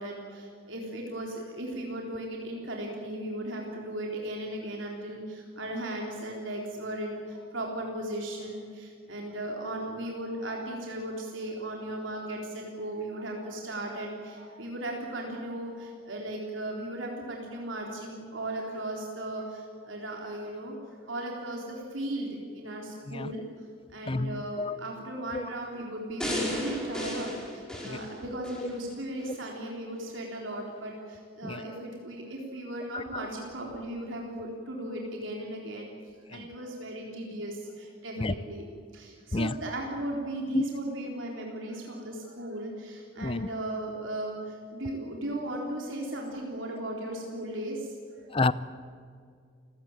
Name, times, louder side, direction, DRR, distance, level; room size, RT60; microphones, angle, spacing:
voice 1, 0.0-23.4 23.9-35.9 36.3-38.7 38.9-48.4, right 1 dB, 80° right, -1 dB, 3.9 m, -36 dB
voice 2, 24.1-24.7 25.3-25.4 27.8-28.0 31.4-31.6 32.9-33.0 36.3-36.4 38.2-38.3 39.3-39.5 40.5-40.6 43.2-43.5 48.3-48.5, left 2 dB, 25° left, 16 dB, 0.6 m, -29 dB
sound 1, 26.2-28.7 29.2-29.3, left 1 dB, 5° left, 5.1 m, -34 dB
28.5 x 16.5 x 9.0 m, 2.3 s
head